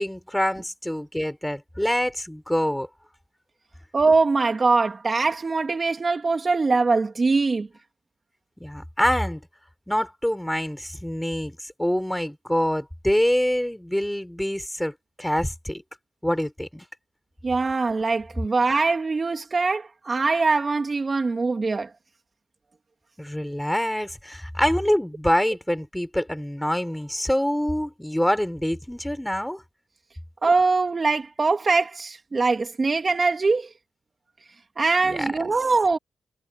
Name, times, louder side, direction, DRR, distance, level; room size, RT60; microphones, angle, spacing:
voice 1, 0.0-2.9 8.6-9.4 9.9-15.8 16.2-16.8 23.2-29.6 35.0-35.3, equal, 5° left, 5.5 m, -25 dB
voice 2, 3.9-7.7 17.4-21.9 30.4-33.7 34.8-36.0, right 3 dB, 35° right, 3.3 m, -22 dB
cardioid pair, 85°, 0 cm